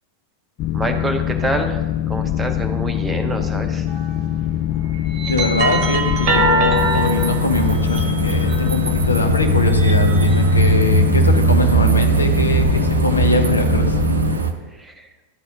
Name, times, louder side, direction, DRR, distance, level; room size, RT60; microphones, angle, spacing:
Boat Water vehicle, 0.6-14.4, left 12 dB, 40° left, 0.4 m, -23 dB
voice 1, 0.7-3.9 14.7-15.1, right 2 dB, 10° right, 3 dB, 0.9 m, -26 dB
sound 1, 3.9-4.2 4.9-9.0 9.5-10.7, right 2 dB, 40° right, 1.1 m, -24 dB
voice 2, 5.3-14.0, left 2 dB, 80° left, 6 dB, 0.8 m, -22 dB
sound 2, 6.7-14.5, right 3 dB, 75° right, 0.6 m, -19 dB
11.0 x 4.1 x 5.0 m, 1.3 s
figure-of-eight pair, 90°, 0 cm